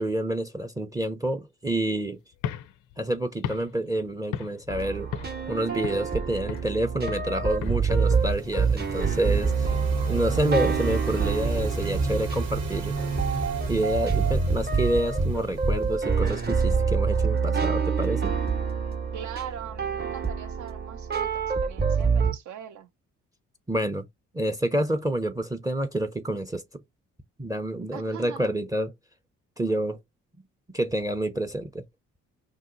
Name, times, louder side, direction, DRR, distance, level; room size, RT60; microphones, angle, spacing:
voice 1, 0.0-2.2 3.0-5.1 5.5-9.7 10.1-13.0 13.7-18.3 23.7-24.0 24.3-26.6 27.4-28.9 29.6-30.0 30.7-31.8, right 1 dB, 10° right, 0.5 m, -28 dB
sound 1, 2.3-4.8 5.1-5.5 5.8-6.8 7.1-7.4 7.6-10.7, left 10 dB, 75° left, 0.4 m, -38 dB
sound 2, 4.7-22.3, right 5 dB, 30° right, 0.8 m, -26 dB
sound 3, 7.7-16.5, right 3 dB, 85° right, 1.0 m, -33 dB
voice 2, 19.1-22.9 27.9-28.5, right 9 dB, 65° right, 0.7 m, -41 dB
2.8 x 2.0 x 3.7 m
supercardioid pair, 55°, 31 cm